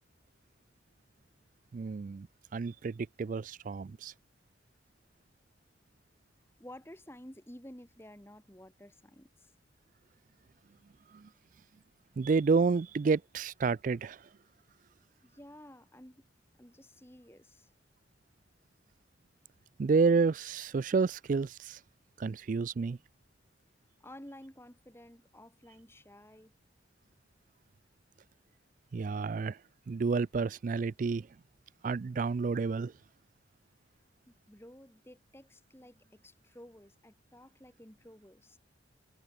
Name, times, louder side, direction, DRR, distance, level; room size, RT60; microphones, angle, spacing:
voice 1, 1.7-2.3 2.5-4.1 11.1-11.3 12.2-14.2 19.8-21.8 22.2-23.0 28.9-29.6 29.9-31.3 31.8-32.9, right 4 dB, 40° right, 0.3 m, -30 dB
voice 2, 6.6-9.5 15.2-16.2 16.6-17.7 24.0-26.5 34.3-38.6, left 1 dB, 10° left, 2.0 m, -52 dB
head